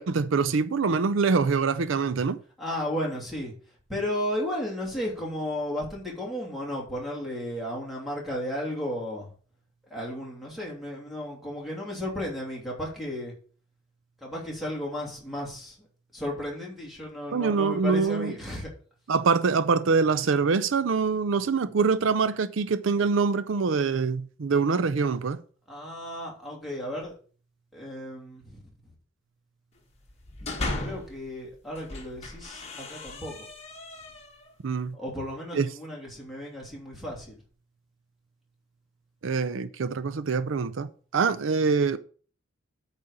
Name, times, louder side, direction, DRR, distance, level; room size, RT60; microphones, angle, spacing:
voice 1, 0.0-2.4 17.3-18.3 19.1-25.4 34.6-35.0 35.5-35.7 39.2-42.0, right 5 dB, 80° right, 0.5 m, -24 dB
voice 2, 2.6-3.5 3.9-9.3 9.9-13.3 14.2-15.8 16.1-18.7 25.7-27.1 27.7-28.6 30.4-33.5 34.9-37.4, left 1 dB, ahead, 2.8 m, -34 dB
sound 1, 30.1-31.2 31.7-34.5, left 2 dB, 30° left, 1.4 m, -36 dB
8.7 x 4.1 x 6.5 m
head